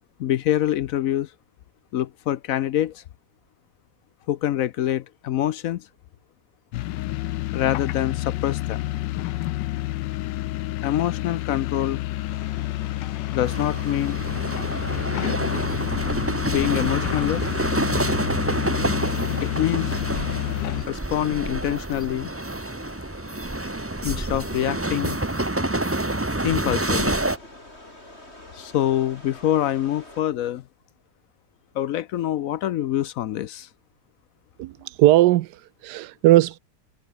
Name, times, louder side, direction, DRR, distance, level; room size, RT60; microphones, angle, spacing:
voice 1, 0.2-1.3 1.9-3.0 4.3-5.9 7.5-9.0 10.8-12.0 13.3-14.2 16.5-17.5 19.4-20.0 20.9-22.3 24.0-25.2 26.4-27.2 28.5-30.6 31.7-33.7, left 12 dB, 65° left, 0.9 m, -25 dB
sound 1, 6.7-20.9, left 16 dB, 90° left, 1.3 m, -29 dB
sound 2, 12.3-30.2, left 1 dB, 35° left, 7.5 m, -47 dB
sound 3, 13.5-27.4, right 2 dB, 10° right, 0.8 m, -27 dB
voice 2, 34.6-36.6, right 15 dB, 75° right, 1.1 m, -19 dB
omnidirectional pair, 1.9 m